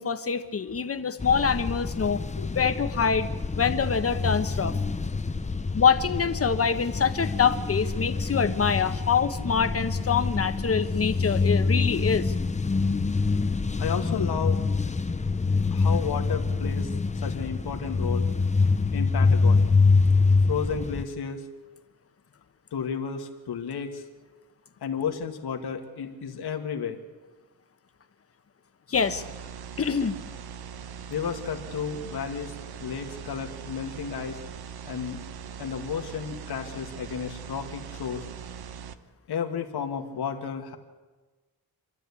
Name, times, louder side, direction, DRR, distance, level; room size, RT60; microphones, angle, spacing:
voice 1, 0.0-2.2 2.5-3.3 3.5-4.7 5.7-12.3 28.9-29.2 29.8-30.2, left 6 dB, 35° left, 9 dB, 1.2 m, -25 dB
sound 1, 1.2-21.0, left 4 dB, 20° left, 0.8 m, -25 dB
voice 2, 13.8-14.6 15.7-16.9 17.2-18.3 18.9-19.8 20.5-21.4 22.7-24.0 24.8-27.0 31.1-34.4 34.8-35.2 35.6-38.2 39.3-40.8, left 7 dB, 80° left, 4 dB, 2.0 m, -32 dB
sound 2, 28.9-38.9, right 7 dB, 75° right, 1.1 m, -41 dB
27.0 x 12.5 x 8.4 m, 1.3 s
wide cardioid pair, 125°, 38 cm